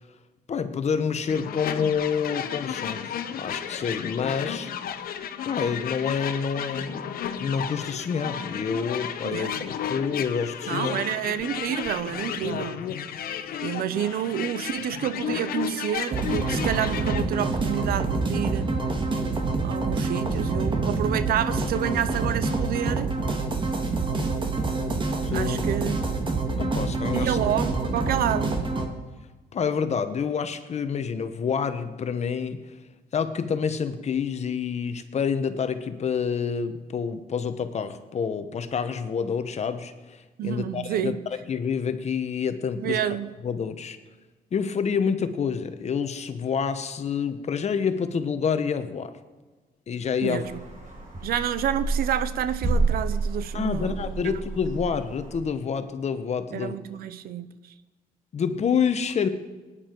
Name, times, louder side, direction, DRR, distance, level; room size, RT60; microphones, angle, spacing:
voice 1, 0.5-4.7 5.5-7.0 7.4-9.5 9.9-11.0 25.2-25.6 26.6-27.4 29.5-32.7 33.1-41.2 41.5-43.0 43.4-44.0 44.5-49.1 49.9-50.5 53.5-56.8 58.3-59.3, left 6 dB, 45° left, 1.1 m, -28 dB
sound 1, 1.3-17.2, left 8 dB, 75° left, 0.9 m, -33 dB
voice 2, 9.2-9.6 10.7-12.8 13.6-18.7 19.6-23.1 25.3-26.1 27.1-28.5 40.4-41.2 42.7-43.3 50.2-50.6 51.2-54.1 56.5-57.5, right 10 dB, 80° right, 0.7 m, -29 dB
sound 2, 16.1-28.9, right 3 dB, 30° right, 1.8 m, -26 dB
sound 3, 50.4-55.4, right 3 dB, 55° right, 5.3 m, -29 dB
19.0 x 10.0 x 4.6 m
cardioid pair, 105°, 15 cm